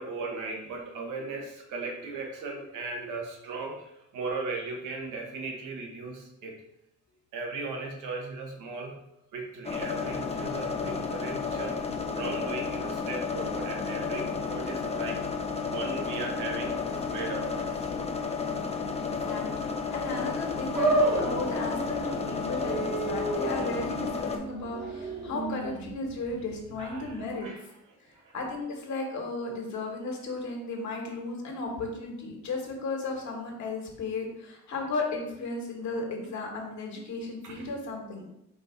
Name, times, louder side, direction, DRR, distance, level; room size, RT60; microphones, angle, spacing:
voice 1, 0.0-6.6 7.3-9.0 9.3-11.8 12.1-15.2 15.5-17.9 24.8-24.9 26.8-27.6 28.0-28.3 37.4-37.6, right 3 dB, 90° right, 0 dB, 1.1 m, -37 dB
sound 1, 9.6-24.4, left 5 dB, 20° left, 0.5 m, -32 dB
voice 2, 19.0-27.5 28.0-38.3, left 3 dB, 70° left, 0 dB, 1.4 m, -35 dB
sound 2, 20.7-27.2, right 2 dB, 65° right, 1.4 m, -31 dB
4.6 x 2.6 x 4.5 m, 0.84 s
cardioid pair, 90°, 30 cm